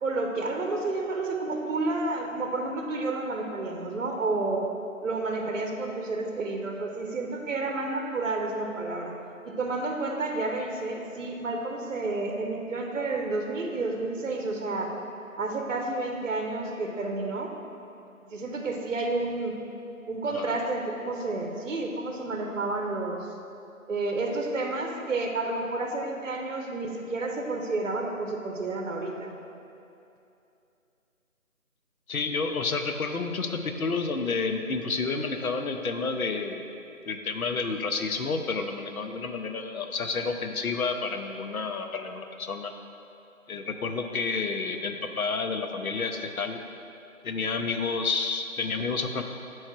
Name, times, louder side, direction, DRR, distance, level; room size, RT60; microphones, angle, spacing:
voice 1, 0.0-4.6 5.0-9.1 9.4-14.9 15.4-17.5 18.3-19.5 20.1-23.3 23.9-29.4, right 2 dB, 60° right, 2 dB, 0.7 m, -30 dB
voice 2, 32.1-36.7 37.0-42.7 43.5-46.6 47.2-49.2, left 4 dB, 75° left, 5 dB, 0.7 m, -30 dB
8.5 x 3.2 x 4.5 m, 2.7 s
figure-of-eight pair, 175°, 43 cm